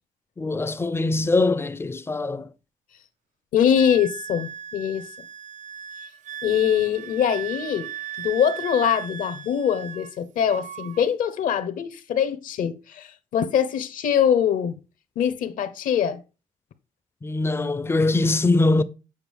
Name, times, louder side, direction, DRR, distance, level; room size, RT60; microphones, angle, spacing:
voice 1, 0.4-2.5 17.2-18.8, left 2 dB, 15° left, 0.5 m, -22 dB
voice 2, 3.5-5.1 6.4-7.9 8.2-14.8 15.2-16.2, left 8 dB, 70° left, 0.9 m, -23 dB
Wind instrument woodwind instrument, 3.8-10.2 10.5-11.1, right 9 dB, 60° right, 0.4 m, -37 dB
8.1 x 5.1 x 3.5 m
cardioid pair, 125°, 14 cm